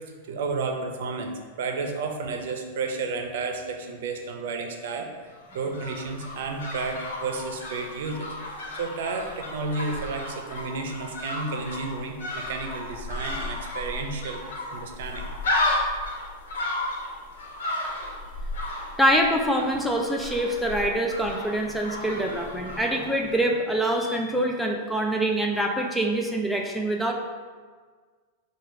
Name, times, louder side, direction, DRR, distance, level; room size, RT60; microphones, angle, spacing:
voice 1, 0.1-5.1 5.5-14.4 14.7-15.2, right 4 dB, 70° right, 4 dB, 0.6 m, -32 dB
sound 1, 5.3-23.5 23.7-23.8, left 2 dB, 85° left, 1.1 m, -33 dB
voice 2, 19.0-27.1, right 1 dB, ahead, 1 dB, 0.4 m, -25 dB
4.8 x 2.4 x 4.6 m, 1.5 s
supercardioid pair, 150°, 0 cm